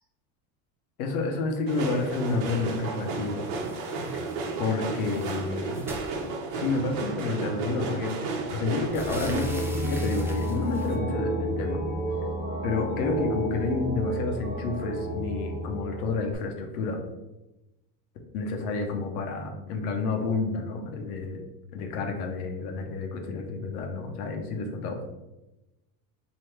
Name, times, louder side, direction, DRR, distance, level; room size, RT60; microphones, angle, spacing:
voice 1, 1.0-3.5 4.6-5.8 6.5-11.8 12.6-17.0 18.3-21.4 21.7-25.0, left 3 dB, 85° left, 3 dB, 1.0 m, -30 dB
sound 1, 1.7-9.4, right 3 dB, 70° right, 1.1 m, -33 dB
sound 2, 3.5-4.6 4.8-6.8 7.8-7.9 8.2-11.0, right 1 dB, 5° right, 0.3 m, -44 dB
sound 3, 8.8-16.3, right 1 dB, 35° right, 1.4 m, -31 dB
3.3 x 3.0 x 4.4 m, 0.99 s
supercardioid pair, 120°, 44 cm